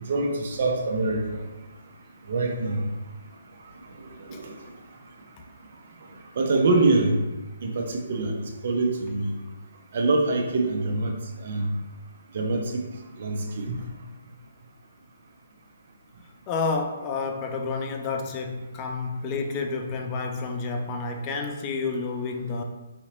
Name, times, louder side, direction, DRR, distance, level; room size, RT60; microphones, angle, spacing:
voice 1, 0.1-1.4 2.3-2.8 4.3-4.5 6.4-7.1 7.6-9.3 9.9-11.1 11.4-11.7 12.3-12.8 13.2-13.7, right 3 dB, 50° right, 1 dB, 0.7 m, -24 dB
voice 2, 16.5-22.6, left 4 dB, 25° left, 3 dB, 0.4 m, -30 dB
4.1 x 2.9 x 2.8 m, 1.1 s
figure-of-eight pair, 135°, 0 cm